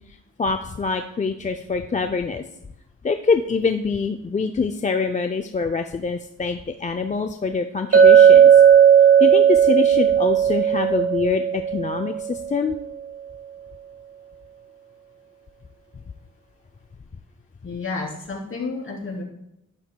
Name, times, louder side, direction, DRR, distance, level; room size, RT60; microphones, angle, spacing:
voice 1, 0.4-2.4 3.0-8.5 9.2-12.8, left 4 dB, 25° left, 6 dB, 0.4 m, -25 dB
Chink clink, 7.9-12.4, right 8 dB, 50° right, 1.6 m, -14 dB
voice 2, 17.6-19.2, left 3 dB, 45° left, -3 dB, 3.0 m, -30 dB
11.5 x 11.0 x 2.2 m, 0.83 s
wide cardioid pair, 110°, 30 cm